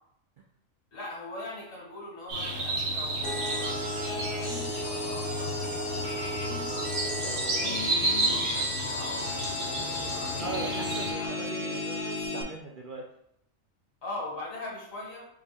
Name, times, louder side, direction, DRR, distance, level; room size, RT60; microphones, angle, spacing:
voice 1, 0.9-7.6 8.1-11.5 14.0-15.3, left 2 dB, 85° left, -3 dB, 1.9 m, -42 dB
sound 1, 2.3-11.1, right 1 dB, 85° right, 1.4 m, -32 dB
sound 2, 3.2-12.4, left 1 dB, 45° left, 1.0 m, -34 dB
voice 2, 10.4-13.0, right 3 dB, 65° right, 0 dB, 0.5 m, -40 dB
5.2 x 2.3 x 4.1 m, 0.74 s
omnidirectional pair, 1.3 m